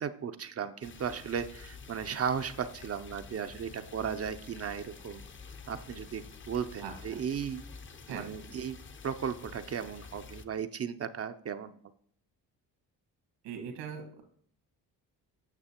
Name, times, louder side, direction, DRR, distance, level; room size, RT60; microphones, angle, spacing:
voice 1, 0.0-5.2 5.7-7.6 8.1-8.8 9.0-11.7, right 7 dB, 35° right, 9 dB, 0.5 m, -36 dB
sound 1, 0.8-10.4, left 5 dB, 30° left, 0.6 m, -49 dB
voice 2, 6.8-7.2 8.1-8.3 13.4-14.2, right 6 dB, 80° right, 5 dB, 1.5 m, -41 dB
8.9 x 6.1 x 2.9 m, 0.62 s
supercardioid pair, 60°, 43 cm